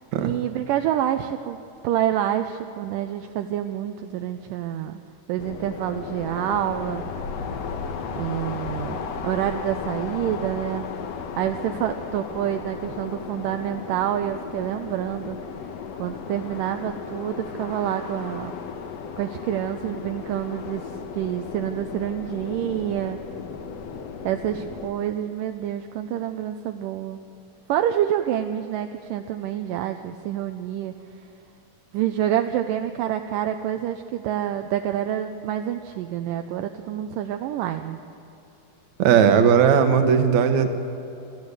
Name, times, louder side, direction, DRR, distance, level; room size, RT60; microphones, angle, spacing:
voice 1, 0.2-5.0 5.3-7.0 8.1-10.8 11.4-15.4 16.0-18.5 19.1-23.2 24.2-27.2 27.7-30.9 31.9-38.0, right 11 dB, 80° right, 7 dB, 2.2 m, -27 dB
sound 1, 5.4-24.9, left 6 dB, 60° left, 1.9 m, -35 dB
voice 2, 39.0-40.7, right 7 dB, 65° right, 8 dB, 2.3 m, -17 dB
27.5 x 13.5 x 8.2 m, 3.0 s
omnidirectional pair, 4.1 m